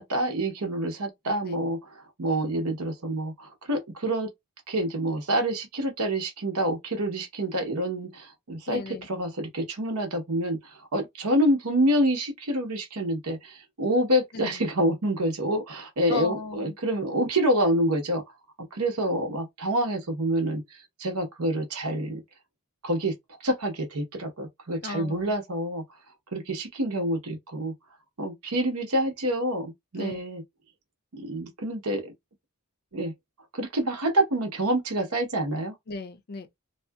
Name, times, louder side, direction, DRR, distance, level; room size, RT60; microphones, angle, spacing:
voice 1, 0.0-4.3 4.7-18.2 18.7-22.2 22.8-23.1 23.4-25.8 26.3-27.7 28.2-30.4 31.1-32.1 32.9-33.1 33.5-35.7, right 1 dB, 85° right, 1.0 m, -27 dB
voice 2, 1.3-1.6 8.7-9.1 14.3-14.6 16.1-16.7 24.8-25.3 30.0-30.2 35.9-36.6, left 4 dB, 45° left, 0.4 m, -36 dB
2.7 x 2.4 x 2.3 m
head